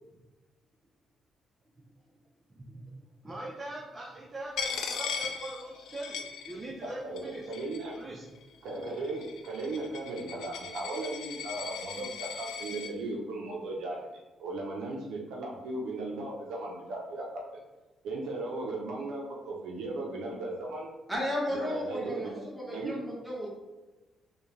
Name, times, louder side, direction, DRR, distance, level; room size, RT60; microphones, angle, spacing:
voice 1, 2.5-2.9 3.2-7.5 8.0-8.2, right 1 dB, 25° right, -3 dB, 0.6 m, -42 dB
Coin (dropping), 4.6-6.9 7.2-8.0 8.7-12.9, left 6 dB, 85° left, 0.5 m, -38 dB
voice 2, 6.8-7.9 8.6-17.6 18.0-20.9 21.5-23.0, right 2 dB, 80° right, -1 dB, 0.7 m, -37 dB
voice 3, 21.1-23.5, left 1 dB, 5° right, -4 dB, 1.4 m, -34 dB
4.4 x 2.4 x 3.2 m, 1.1 s
cardioid pair, 90°, 0 cm